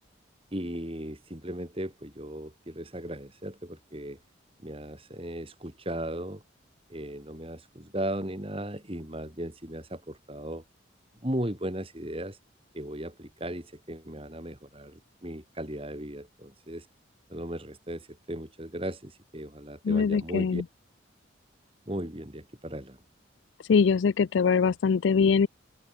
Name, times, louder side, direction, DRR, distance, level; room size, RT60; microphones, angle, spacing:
voice 1, 0.5-4.2 4.6-6.4 6.9-10.6 11.2-12.4 12.7-16.9 17.3-20.6 21.9-23.0, right 1 dB, 30° right, 3.6 m, -36 dB
voice 2, 19.8-20.6 23.7-25.5, left 5 dB, 70° left, 0.4 m, -23 dB
head